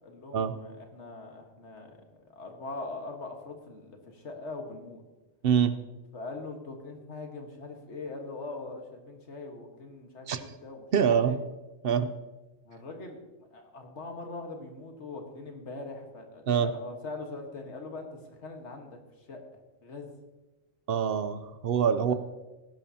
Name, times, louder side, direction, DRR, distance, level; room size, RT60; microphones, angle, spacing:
voice 1, 0.0-5.0 6.1-11.4 12.7-19.0 19.3-20.1 22.1-22.2, left 3 dB, 90° left, 3 dB, 1.8 m, -42 dB
voice 2, 5.4-5.7 10.3-10.4 10.9-11.4 11.8-12.1 16.5-16.7 20.9-22.1, right 7 dB, 60° right, 11 dB, 0.8 m, -25 dB
17.0 x 10.5 x 2.8 m, 1.1 s
omnidirectional pair, 1.1 m